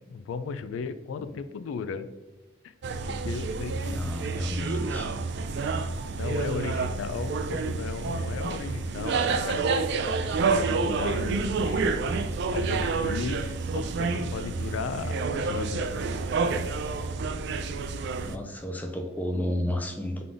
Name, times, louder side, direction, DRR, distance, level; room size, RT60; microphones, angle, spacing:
voice 1, 0.0-2.1 2.6-2.7 3.1-4.1 6.2-9.7 10.5-11.8 12.5-16.0, left 5 dB, 85° left, 11 dB, 0.3 m, -35 dB
sound 1, 2.8-18.4, right 4 dB, 60° right, 0.4 m, -29 dB
voice 2, 3.9-5.1 18.2-20.2, left 1 dB, 10° left, 4 dB, 0.5 m, -32 dB
3.8 x 3.7 x 3.4 m, 1.2 s
head